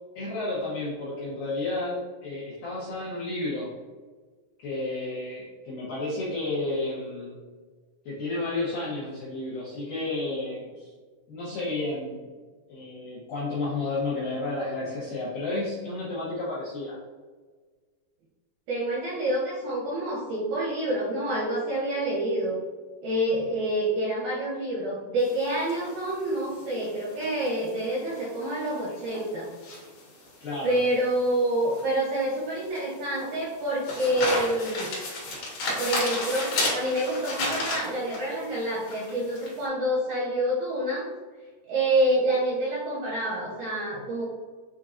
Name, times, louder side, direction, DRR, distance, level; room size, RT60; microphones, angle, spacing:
voice 1, 0.2-3.7 4.6-7.4 8.1-10.9 11.3-12.3 12.7-17.0 30.4-30.8, left 2 dB, 75° left, -9 dB, 2.1 m, -31 dB
voice 2, 18.7-22.6 23.0-29.5 30.6-34.9 35.8-41.1 41.7-44.3, right 1 dB, 75° right, -7 dB, 2.3 m, -27 dB
sound 1, 25.2-39.6, left 2 dB, 60° left, 2.4 m, -34 dB
7.3 x 2.7 x 2.5 m, 1.4 s
omnidirectional pair, 5.5 m